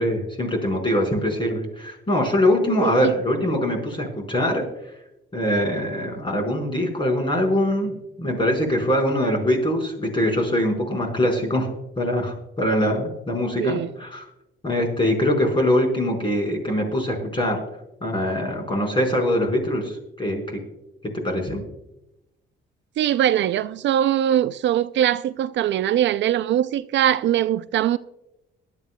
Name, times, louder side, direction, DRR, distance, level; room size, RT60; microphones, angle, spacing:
voice 1, 0.0-4.6 5.3-11.7 12.0-14.2 14.6-17.6 18.0-20.6 21.2-21.6, left 1 dB, 25° left, 4.8 m, -23 dB
voice 2, 2.8-3.1 13.6-13.9 23.0-28.0, right 11 dB, 65° right, 0.4 m, -21 dB
22.0 x 12.0 x 2.3 m
cardioid pair, 90°, 20 cm